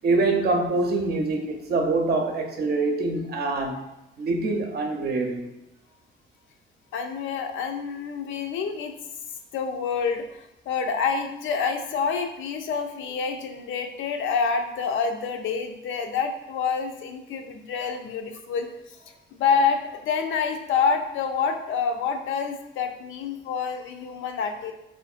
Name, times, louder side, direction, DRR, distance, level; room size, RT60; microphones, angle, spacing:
voice 1, 0.0-3.8 4.2-5.5, right 3 dB, 55° right, 0.6 m, -25 dB
voice 2, 6.9-8.9 9.5-19.0 19.3-24.7, left 5 dB, 75° left, 0.5 m, -27 dB
4.3 x 2.5 x 2.4 m
cardioid pair, 90°, 20 cm